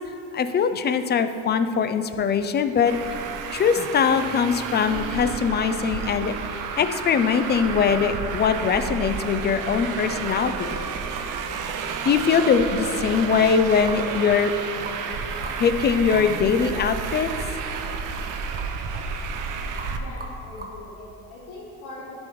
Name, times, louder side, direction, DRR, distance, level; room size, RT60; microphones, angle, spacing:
voice 1, 0.3-2.9 3.5-10.8 12.0-14.5 15.6-17.3, left 6 dB, 30° left, 10 dB, 0.4 m, -22 dB
Traffic noise roadway noise, 2.9-20.0, right 6 dB, 60° right, 0.7 m, -31 dB
sound 1, 10.3-10.4 10.8-11.3 11.7-11.8 12.0-12.5 12.8-12.9 13.3-14.0 14.4-14.5 14.8-15.0 15.4-15.6 15.9-16.0 16.1-16.3 16.7-17.0 17.2-17.4 17.7-17.9 18.1-18.3 18.5-19.0 19.3-19.5 19.7-19.9 20.2-20.7, right 3 dB, 25° right, 1.2 m, -40 dB
voice 2, 19.9-22.3, left 2 dB, 75° left, -4 dB, 1.3 m, -41 dB
10.5 x 5.3 x 3.1 m, 2.9 s
supercardioid pair, 85°, 36 cm